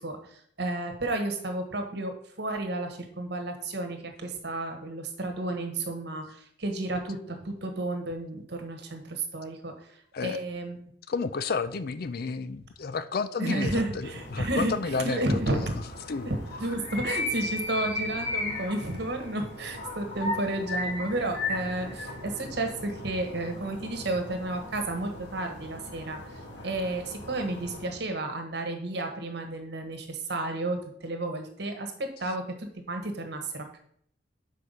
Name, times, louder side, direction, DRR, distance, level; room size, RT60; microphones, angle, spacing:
voice 1, 0.0-10.8 13.4-15.8 16.2-26.2 26.6-33.8, right 2 dB, 65° right, 5 dB, 1.4 m, -32 dB
voice 2, 11.1-15.7 16.1-16.3, left 4 dB, 55° left, 13 dB, 0.5 m, -31 dB
sound 1, 14.0-28.0, left 2 dB, 75° left, 2.7 m, -37 dB
6.7 x 4.8 x 5.5 m, 0.65 s
head